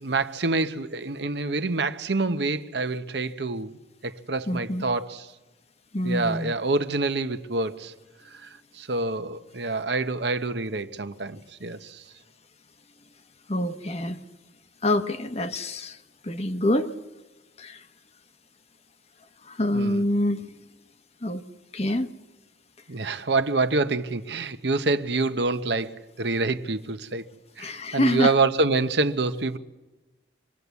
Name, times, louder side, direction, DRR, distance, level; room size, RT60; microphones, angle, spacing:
voice 1, 0.0-3.8 4.0-5.3 6.0-7.9 8.4-8.5 8.7-12.0 19.7-20.0 22.9-27.3 27.6-29.6, right 3 dB, 65° right, 1.0 m, -26 dB
voice 2, 4.5-4.8 5.9-6.5 13.5-14.2 14.8-16.0 16.2-17.0 17.6-17.8 19.5-20.4 21.2-21.4 21.7-22.1 27.6-28.3, left 1 dB, 35° left, 1.1 m, -26 dB
26.5 x 21.0 x 8.3 m
head